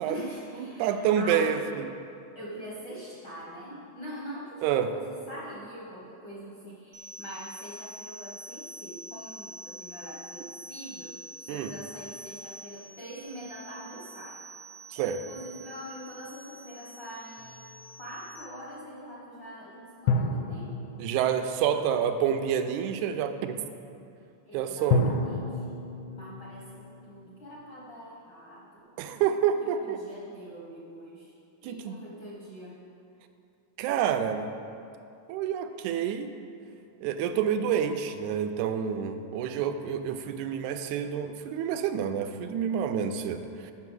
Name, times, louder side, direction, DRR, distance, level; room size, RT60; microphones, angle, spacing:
voice 1, 0.0-1.6 2.3-14.4 15.3-17.7 18.0-20.8 21.7-21.8 24.4-25.7 26.0-28.9 29.6-31.3 31.6-32.8, equal, 60° left, -5 dB, 1.1 m, -43 dB
voice 2, 0.6-1.9 4.6-4.9 11.5-11.7 14.9-15.2 21.0-23.6 24.5-25.1 29.0-30.0 31.6-31.9 33.8-34.5 35.3-36.3 37.0-43.7, right 8 dB, 85° right, 8 dB, 2.0 m, -28 dB
sound 1, 6.9-18.4, right 1 dB, 70° right, 1.9 m, -46 dB
sound 2, 17.4-18.3 20.1-22.4 24.9-28.0, left 3 dB, 80° left, 2.0 m, -31 dB
7.6 x 5.7 x 6.1 m, 2.5 s
omnidirectional pair, 3.4 m